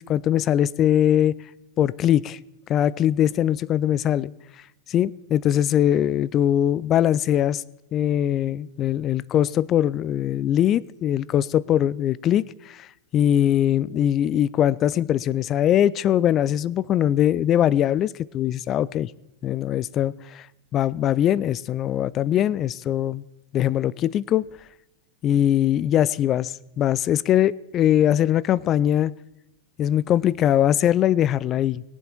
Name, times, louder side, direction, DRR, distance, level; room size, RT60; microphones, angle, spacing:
voice 1, 0.0-1.3 1.8-2.4 2.7-4.3 4.9-7.6 7.9-12.8 13.1-19.1 19.4-20.4 20.7-23.2 23.5-24.5 25.2-29.1 29.8-31.8, left 11 dB, 30° left, 22 dB, 0.4 m, -21 dB
21.5 x 7.3 x 4.4 m, 0.91 s
figure-of-eight pair, 90°, 0 cm